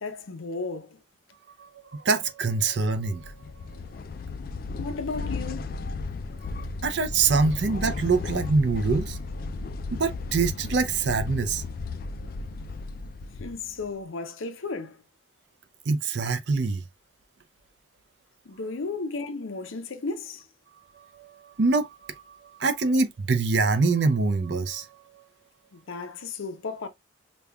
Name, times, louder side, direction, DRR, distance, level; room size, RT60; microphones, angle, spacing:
voice 1, 0.0-1.0 4.8-5.7 13.4-15.0 18.5-20.4 25.7-26.9, left 3 dB, 90° left, 0.7 m, -34 dB
voice 2, 1.6-3.3 6.8-9.2 10.0-11.6 15.9-16.8 21.0-25.2, right 4 dB, 60° right, 0.5 m, -25 dB
sound 1, 3.0-14.0, left 3 dB, 45° left, 0.3 m, -35 dB
5.2 x 2.3 x 2.2 m
head